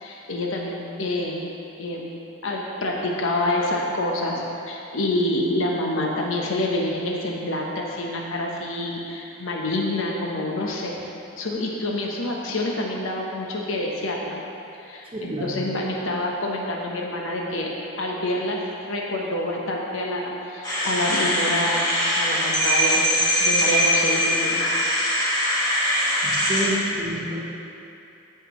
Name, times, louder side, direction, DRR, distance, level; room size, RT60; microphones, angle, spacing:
voice 1, 0.0-1.4 1.8-2.1 2.4-10.9 11.4-14.4 14.8-17.7 18.0-24.7, left 1 dB, 75° left, -1 dB, 1.0 m, -27 dB
voice 2, 15.1-15.6 26.2-27.4, right 1 dB, 25° right, -5 dB, 1.2 m, -29 dB
sound 1, 20.6-26.7, equal, 20° left, 1.6 m, -22 dB
14.0 x 5.7 x 3.1 m, 2.7 s
head